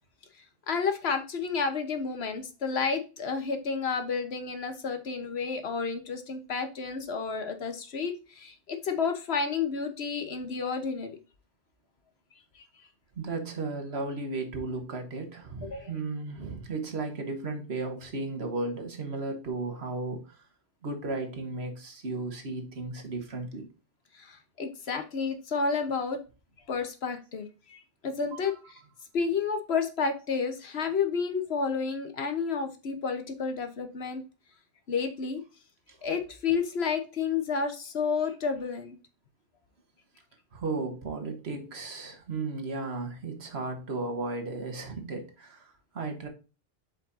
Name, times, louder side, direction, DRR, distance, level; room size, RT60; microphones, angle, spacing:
voice 1, 0.7-11.2 15.6-15.9 24.1-26.2 26.7-28.8 29.1-34.2 34.9-35.4 36.0-39.0, left 5 dB, 85° left, 7 dB, 1.4 m, -31 dB
voice 2, 13.1-20.4 20.8-23.7 28.3-28.5 35.9-36.0 40.5-46.3, right 3 dB, 85° right, 5 dB, 1.6 m, -35 dB
7.6 x 5.2 x 2.7 m, 0.32 s
omnidirectional pair, 1.1 m